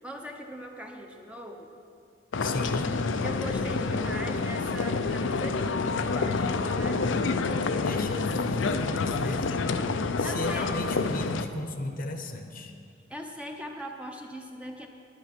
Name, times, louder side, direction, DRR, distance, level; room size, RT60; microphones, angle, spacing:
voice 1, 0.0-1.7 3.2-7.8 10.2-10.7 13.1-14.9, equal, 5° right, 2 dB, 0.7 m, -40 dB
sound 1, 2.3-11.5, left 4 dB, 65° left, 0.5 m, -28 dB
voice 2, 2.4-2.9 7.8-9.6 10.2-12.7, left 2 dB, 45° left, 5 dB, 0.9 m, -34 dB
10.5 x 10.5 x 5.9 m, 2.5 s
head